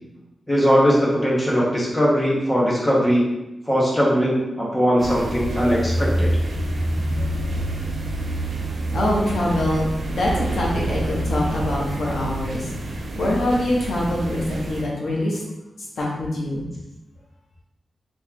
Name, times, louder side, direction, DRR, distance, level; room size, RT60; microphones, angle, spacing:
voice 1, 0.5-3.2 3.7-6.3, equal, 10° left, -5 dB, 1.1 m, -19 dB
sound 1, 5.0-14.8, right 1 dB, 60° right, 0.6 m, -27 dB
voice 2, 8.9-15.4 16.0-16.6, left 1 dB, 70° left, -3 dB, 1.0 m, -24 dB
3.1 x 3.1 x 3.7 m, 0.98 s
wide cardioid pair, 160°, 0 cm